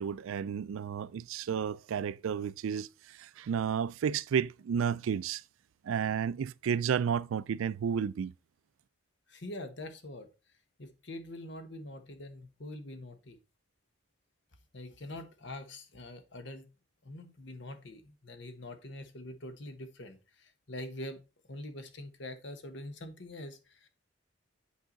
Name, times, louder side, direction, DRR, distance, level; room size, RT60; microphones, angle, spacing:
voice 1, 0.0-5.4 5.8-8.3, right 7 dB, 85° right, 0.3 m, -32 dB
voice 2, 9.3-10.3 10.8-13.4 14.7-16.7 17.0-23.9, left 1 dB, 60° left, 1.1 m, -44 dB
8.7 x 4.7 x 3.9 m
head